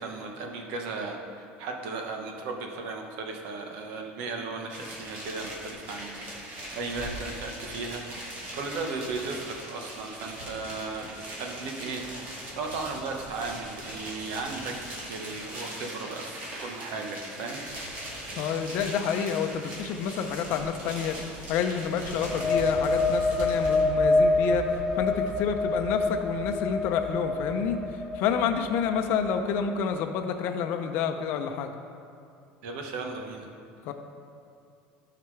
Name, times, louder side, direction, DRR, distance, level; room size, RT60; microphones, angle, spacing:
voice 1, 0.0-12.0 12.3-14.7 15.1-17.7 32.6-33.5, right 3 dB, 70° right, 2 dB, 1.1 m, -36 dB
sound 1, 4.7-23.8, right 1 dB, 45° right, 2.1 m, -40 dB
voice 2, 18.3-27.8 28.1-31.7 33.8-33.9, left 7 dB, 55° left, 6 dB, 0.7 m, -29 dB
sound 2, 22.1-29.6, left 2 dB, 5° right, 1.6 m, -27 dB
14.0 x 5.8 x 3.3 m, 2.5 s
cardioid pair, 165°, 4 cm